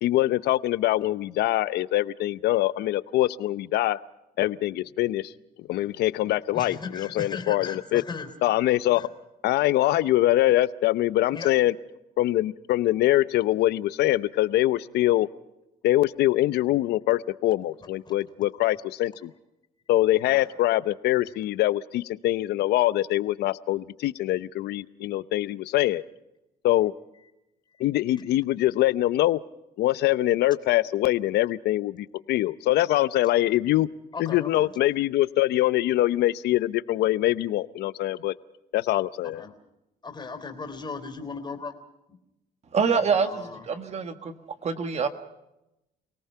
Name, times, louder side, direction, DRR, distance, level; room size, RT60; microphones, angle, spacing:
voice 1, 0.0-4.0 4.4-5.3 5.7-8.0 8.4-9.1 9.4-11.7 12.2-15.3 15.8-19.3 19.9-26.0 26.6-26.9 27.8-29.4 29.8-33.9 34.2-38.3 38.7-39.4, left 15 dB, 75° left, 16 dB, 0.7 m, -23 dB
voice 2, 6.5-8.3 8.9-9.1 11.3-11.6 17.8-18.2 20.1-20.5 27.7-27.9 28.1-28.3 34.1-34.7 39.2-39.5 40.0-41.7 42.9-43.7, left 4 dB, 25° left, 7 dB, 3.6 m, -38 dB
voice 3, 42.7-44.3 44.6-45.1, right 5 dB, 40° right, 8 dB, 1.7 m, -25 dB
28.5 x 18.5 x 5.7 m, 0.90 s
cardioid pair, 110°, 17 cm